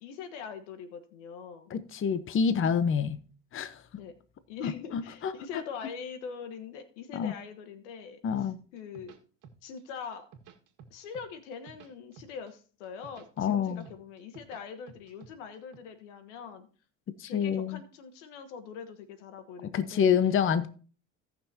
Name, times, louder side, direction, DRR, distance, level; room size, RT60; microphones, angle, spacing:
voice 1, 0.0-1.7 4.0-4.1 4.5-9.2 9.6-10.2 10.9-16.7 17.2-20.1, left 6 dB, 85° left, 1.3 m, -43 dB
voice 2, 1.7-3.2 3.5-3.8 4.6-5.3 7.1-7.3 8.2-8.6 13.4-13.8 17.2-17.8 19.7-20.7, left 7 dB, 35° left, 0.9 m, -27 dB
sound 1, 8.8-9.8 10.1-11.3 11.5-12.5 12.8-14.6 14.9-15.8, right 7 dB, 60° right, 1.8 m, -52 dB
17.5 x 6.1 x 2.8 m
supercardioid pair, 80°, 36 cm